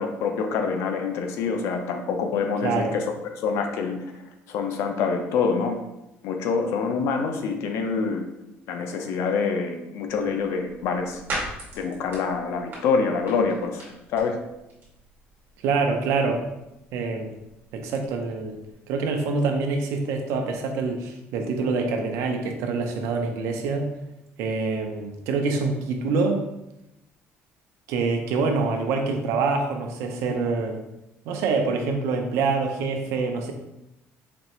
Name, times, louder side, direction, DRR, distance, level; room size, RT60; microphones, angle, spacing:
voice 1, 0.0-3.1 3.4-4.0 4.5-5.8 6.2-8.2 8.7-11.2 11.7-14.4, left 5 dB, 75° left, 5 dB, 0.6 m, -26 dB
voice 2, 2.6-2.9 15.6-16.4 16.9-17.3 17.7-18.6 18.9-23.9 24.4-26.4 27.9-30.8 31.3-33.5, right 4 dB, 85° right, 4 dB, 0.6 m, -25 dB
sound 1, 10.1-18.7, right 2 dB, 45° right, 1.4 m, -41 dB
4.2 x 3.1 x 2.9 m, 0.90 s
cardioid pair, 150°, 5 cm